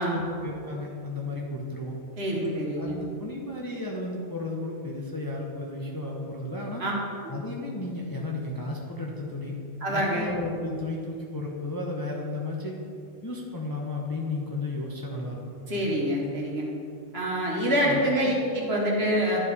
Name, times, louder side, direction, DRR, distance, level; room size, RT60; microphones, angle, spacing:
voice 1, 0.0-2.0 2.4-6.8 7.3-9.6 9.9-12.7 13.2-15.4 17.8-18.4, left 2 dB, 20° left, -2 dB, 0.7 m, -33 dB
voice 2, 2.2-2.9 6.8-6.9 9.8-10.3 15.7-16.7 17.1-19.4, equal, 55° right, -3 dB, 1.7 m, -26 dB
11.5 x 4.8 x 4.1 m, 2.5 s
omnidirectional pair, 1.3 m